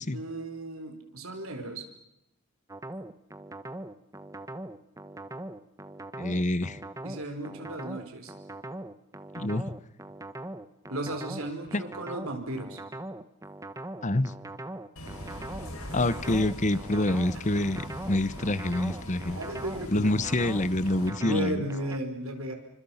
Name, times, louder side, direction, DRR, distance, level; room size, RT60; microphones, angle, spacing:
voice 1, 0.1-1.9 7.0-8.3 10.9-12.8 17.4-17.6 19.2-20.2 21.2-22.5, right 1 dB, 70° right, 5 dB, 4.4 m, -35 dB
sound 1, 2.7-22.0, right 1 dB, 15° right, 1.2 m, -41 dB
voice 2, 6.2-6.8 9.4-9.7 11.7-11.8 14.0-14.3 15.7-19.4 19.9-21.6, left 1 dB, 35° left, 17 dB, 1.0 m, -27 dB
Bus, 15.0-21.1, equal, 80° left, 5.9 m, -41 dB
29.5 x 25.5 x 5.8 m, 0.81 s
head